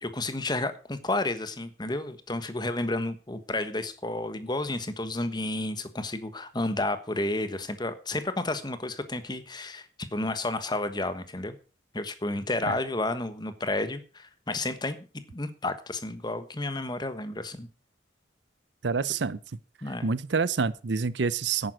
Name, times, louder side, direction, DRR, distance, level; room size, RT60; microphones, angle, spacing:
voice 1, 0.0-9.9 10.1-11.5 11.9-15.0 15.3-17.7 19.8-20.1, left 2 dB, 25° left, 1.3 m, -31 dB
voice 2, 18.8-19.4 20.0-21.7, right 5 dB, 70° right, 0.6 m, -27 dB
10.5 x 9.2 x 6.3 m
head